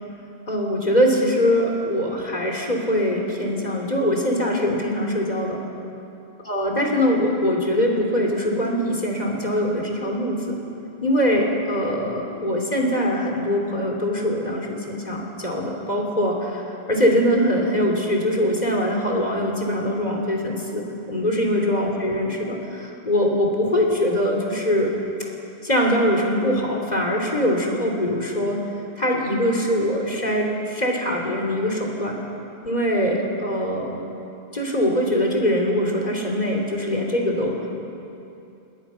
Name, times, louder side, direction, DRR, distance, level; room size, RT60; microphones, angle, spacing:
voice 1, 0.5-5.6 6.5-10.6 11.0-20.8 21.1-24.9 25.6-28.6 29.0-32.2 32.6-34.0 34.5-37.7, equal, 40° left, 0 dB, 3.4 m, -22 dB
27.5 x 20.0 x 5.8 m, 2.7 s
omnidirectional pair, 1.1 m